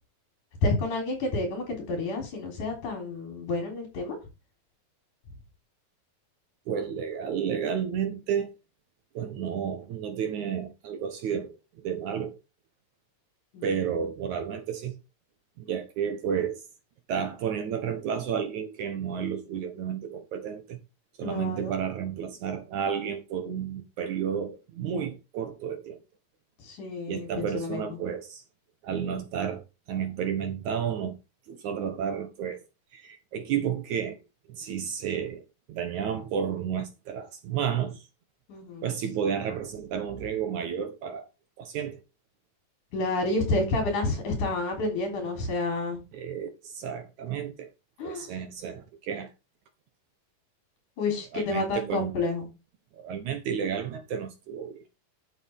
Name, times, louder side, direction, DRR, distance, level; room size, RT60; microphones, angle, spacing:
voice 1, 0.6-4.2 13.5-13.8 15.7-15.8 21.2-21.8 26.6-27.8 38.5-38.9 42.9-46.0 48.0-48.3 51.0-52.5, left 2 dB, 60° left, 4.9 m, -29 dB
voice 2, 6.7-8.5 9.1-12.4 13.6-15.0 15.6-16.6 17.1-20.8 21.2-26.0 27.1-28.4 28.8-31.2 31.5-32.6 32.9-34.2 34.5-35.4 35.7-38.1 38.8-41.3 41.6-42.0 46.1-47.7 48.0-49.3 51.3-52.1 52.9-54.8, right 8 dB, 65° right, 2.3 m, -31 dB
11.5 x 7.2 x 3.6 m
omnidirectional pair, 4.0 m